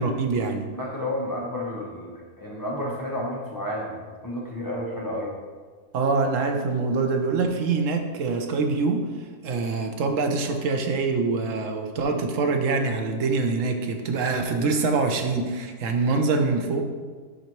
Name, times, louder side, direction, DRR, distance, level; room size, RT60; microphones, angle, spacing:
voice 1, 0.0-0.6 5.9-9.1 9.4-16.8, right 4 dB, 80° right, 4 dB, 1.1 m, -24 dB
voice 2, 0.7-5.3, left 1 dB, 20° left, -4 dB, 0.9 m, -31 dB
10.0 x 4.1 x 3.0 m, 1.5 s
omnidirectional pair, 1.3 m